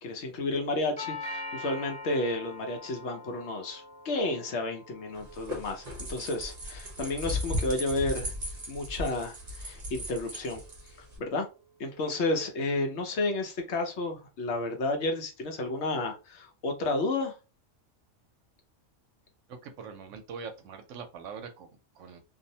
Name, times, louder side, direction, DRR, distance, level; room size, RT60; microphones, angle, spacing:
voice 1, 0.0-8.3 8.7-10.6 11.0-11.5 11.8-17.4, left 2 dB, 65° left, 0.9 m, -31 dB
Doorbell, 1.0-9.0, left 2 dB, 10° left, 0.4 m, -44 dB
sound 1, 5.1-11.2, left 1 dB, 40° right, 0.7 m, -36 dB
voice 2, 19.5-22.2, right 5 dB, 75° right, 0.9 m, -43 dB
2.6 x 2.1 x 2.7 m
omnidirectional pair, 1.3 m